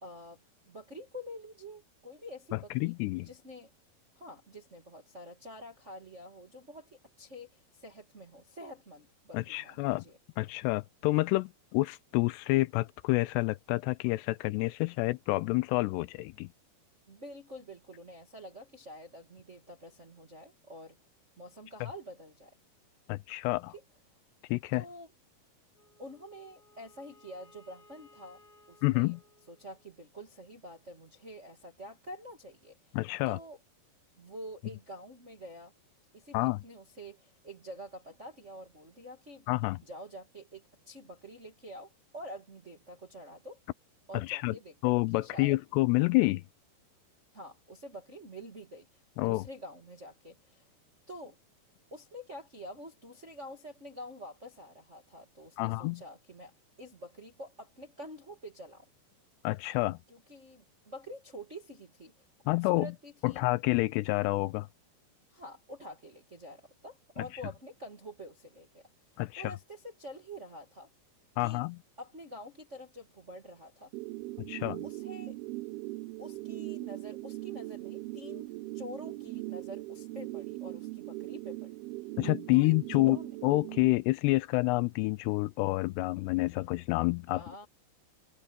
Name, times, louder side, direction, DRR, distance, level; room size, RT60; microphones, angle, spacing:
voice 1, 0.0-0.4 0.7-2.9 3.2-3.7 4.1-10.2 17.1-21.0 21.4-22.6 24.7-25.1 26.0-28.4 28.7-29.1 29.5-32.8 33.2-33.6 34.2-35.7 36.1-39.4 39.8-43.6 44.1-45.6 47.3-48.9 49.2-50.6 51.1-51.4 51.9-56.5 56.8-58.8 60.1-63.4 65.3-68.8 69.4-70.9 71.4-71.6 72.0-73.9 74.8-75.4 76.2-81.8 82.5-83.3 87.3-87.7, equal, 30° right, 1.3 m, -47 dB
voice 2, 2.5-3.3 9.3-10.0 10.4-16.5 23.1-23.7 24.5-24.9 28.8-29.2 32.9-33.4 36.3-36.6 39.5-39.8 44.1-44.6 44.8-46.4 49.2-49.5 55.6-56.0 59.4-60.0 62.5-62.9 63.2-64.7 69.2-69.5 71.4-71.8 74.4-74.8 82.2-87.4, left 21 dB, 85° left, 2.6 m, -28 dB
Wind instrument woodwind instrument, 25.7-30.2, left 2 dB, 60° left, 4.8 m, -61 dB
sound 1, 73.9-83.9, right 20 dB, 85° right, 2.2 m, -40 dB
omnidirectional pair, 4.9 m